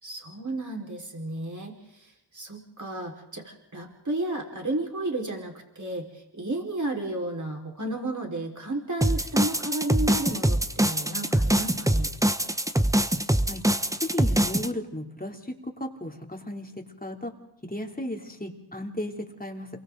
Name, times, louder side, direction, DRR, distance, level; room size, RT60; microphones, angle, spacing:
voice 1, 0.0-12.1, right 2 dB, 40° right, 0 dB, 4.7 m, -33 dB
sound 1, 9.0-14.7, right 1 dB, 5° right, 0.9 m, -23 dB
voice 2, 14.0-16.7 17.0-17.3 17.6-19.7, left 1 dB, 20° left, 2 dB, 3.0 m, -34 dB
28.5 x 23.5 x 3.9 m, 0.87 s
cardioid pair, 40°, 45 cm